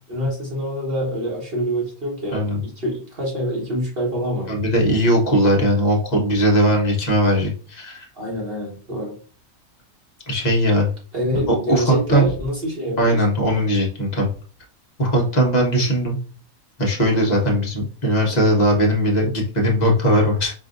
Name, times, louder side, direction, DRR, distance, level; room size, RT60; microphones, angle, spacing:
voice 1, 0.1-4.5 8.2-9.2 11.1-13.2, equal, 45° right, -2 dB, 1.4 m, -26 dB
voice 2, 4.5-8.1 10.3-10.9 11.5-12.3 13.0-14.3 15.0-16.2 16.8-20.5, equal, 35° left, -1 dB, 1.1 m, -19 dB
5.4 x 2.6 x 2.5 m, 0.40 s
omnidirectional pair, 1.4 m